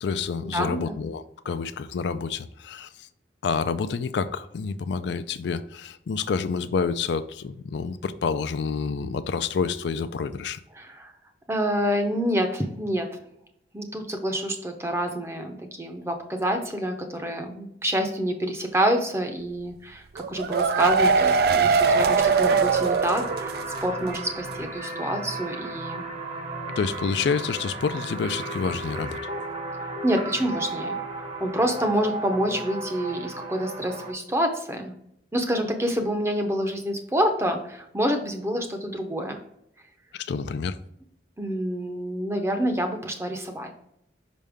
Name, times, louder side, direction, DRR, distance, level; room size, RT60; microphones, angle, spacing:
voice 1, 0.0-3.1 3.4-10.6 26.7-29.2 40.1-40.8, left 5 dB, 70° left, 12 dB, 0.3 m, -28 dB
voice 2, 0.5-1.0 10.7-11.1 11.5-13.1 13.7-26.0 30.0-31.0 31.4-34.9 35.3-39.4 41.4-43.7, equal, 15° right, 5 dB, 0.6 m, -27 dB
sound 1, 20.2-23.8 24.1-24.2 24.5-24.6, right 5 dB, 55° right, 0.3 m, -21 dB
sound 2, 21.8-34.1, right 2 dB, 35° right, 0.9 m, -34 dB
5.4 x 5.2 x 3.5 m, 0.76 s
head